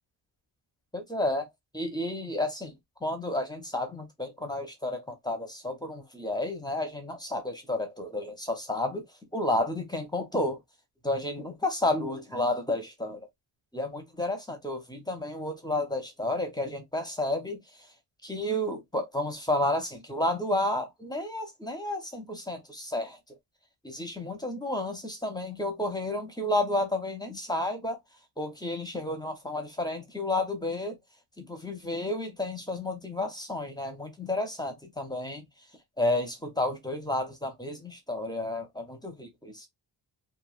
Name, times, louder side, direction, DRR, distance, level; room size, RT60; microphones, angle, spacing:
voice 1, 0.9-1.5 1.7-2.7 3.0-9.0 9.3-10.6 11.0-13.3 13.7-17.6 18.2-23.2 23.8-28.0 28.4-31.0 31.4-35.4 36.0-39.7, left 1 dB, 10° left, 0.5 m, -31 dB
3.0 x 2.4 x 2.3 m
wide cardioid pair, 160°, 42 cm